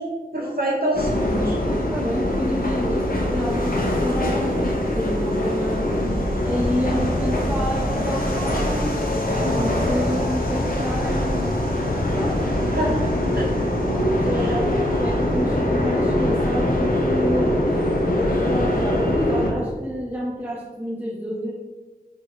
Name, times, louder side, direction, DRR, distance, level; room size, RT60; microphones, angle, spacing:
voice 1, 0.0-1.6 12.5-13.0 13.4-13.5 14.4-14.6, right 1 dB, 75° right, -3 dB, 2.3 m, -26 dB
sound 1, 0.9-19.5, left 1 dB, 65° left, 1.6 m, -23 dB
voice 2, 1.9-6.0 6.4-11.5 11.8-12.7 13.9-17.5 18.1-21.5, equal, 10° right, -6 dB, 1.5 m, -29 dB
5.7 x 5.1 x 6.0 m, 1.3 s
wide cardioid pair, 50°, 16 cm